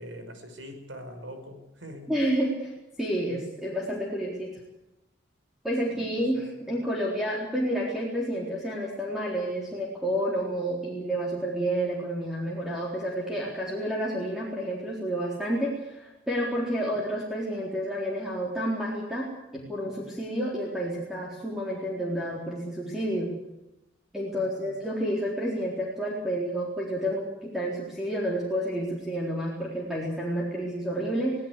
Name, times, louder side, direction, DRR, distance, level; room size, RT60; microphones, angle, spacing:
voice 1, 0.0-2.1 5.9-6.7 19.8-20.1 24.3-24.9, equal, 75° right, 6 dB, 6.0 m, -44 dB
voice 2, 2.1-2.7 3.0-4.5 5.6-19.3 19.5-23.3 24.1-31.3, equal, ahead, -4 dB, 4.1 m, -30 dB
24.0 x 17.5 x 8.4 m, 0.91 s
head